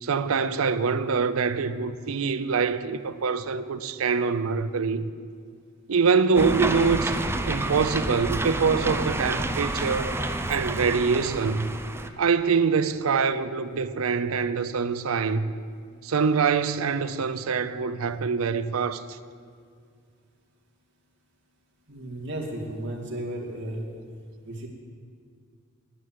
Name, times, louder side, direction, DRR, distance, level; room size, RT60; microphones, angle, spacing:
voice 1, 0.0-5.1 5.9-10.2 10.5-11.7 12.2-15.5 16.0-19.2, right 5 dB, 85° right, 0.5 m, -25 dB
sound 1, 6.4-12.1, right 1 dB, 10° right, 0.5 m, -29 dB
voice 2, 21.9-23.8 24.4-24.7, right 1 dB, 60° right, 2.1 m, -34 dB
9.7 x 9.3 x 7.4 m
head